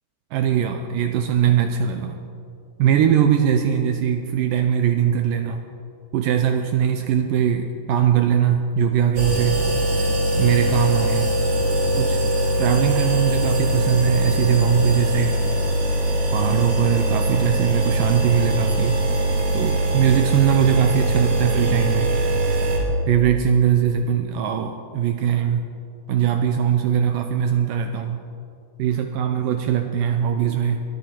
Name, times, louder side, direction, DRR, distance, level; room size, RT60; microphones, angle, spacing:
voice 1, 0.3-2.2 2.8-5.6 6.1-11.3 11.9-12.2 12.6-15.4 16.3-19.0 19.5-22.1 22.7-25.7 26.1-28.2 28.8-30.8, right 8 dB, 80° right, 6 dB, 2.0 m, -21 dB
sound 1, 9.2-22.8, right 1 dB, 45° right, 3.7 m, -21 dB
22.0 x 13.5 x 4.5 m, 2.4 s
omnidirectional pair, 4.4 m